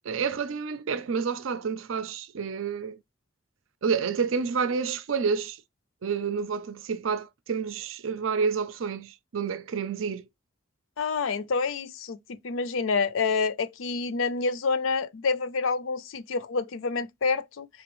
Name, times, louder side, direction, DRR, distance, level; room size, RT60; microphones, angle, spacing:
voice 1, 0.0-3.0 3.8-5.6 6.0-10.3, right 5 dB, 90° right, 0.5 m, -29 dB
voice 2, 11.0-17.7, left 4 dB, 90° left, 0.5 m, -28 dB
4.3 x 3.3 x 3.0 m
head